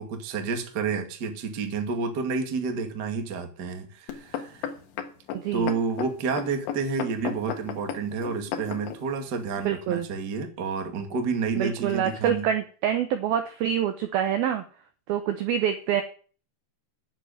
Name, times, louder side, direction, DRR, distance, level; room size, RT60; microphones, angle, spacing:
voice 1, 0.0-4.7 5.5-12.5, right 5 dB, 50° right, 5 dB, 1.2 m, -30 dB
sound 1, 4.1-9.0 9.7-9.8, left 8 dB, 75° left, 3.8 m, -34 dB
voice 2, 5.3-5.7 9.7-10.1 11.6-14.6 15.1-16.0, right 9 dB, 75° right, 8 dB, 2.2 m, -26 dB
9.6 x 7.6 x 9.3 m, 0.40 s
omnidirectional pair, 5.4 m